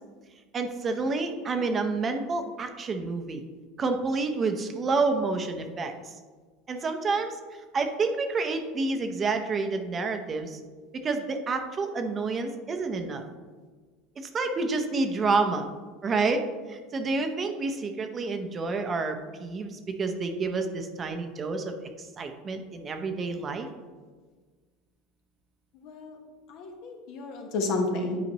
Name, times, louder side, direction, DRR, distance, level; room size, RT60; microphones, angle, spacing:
voice 1, 0.5-3.4 3.8-6.1 6.7-7.4 7.7-10.6 11.0-13.2 14.2-15.7 16.0-16.4 16.7-23.7, right 3 dB, 35° right, 6 dB, 0.8 m, -29 dB
voice 2, 25.8-26.2 26.5-28.2, left 2 dB, 60° left, 2 dB, 1.2 m, -31 dB
9.4 x 5.0 x 3.0 m, 1.4 s
hypercardioid pair, 90°, 0 cm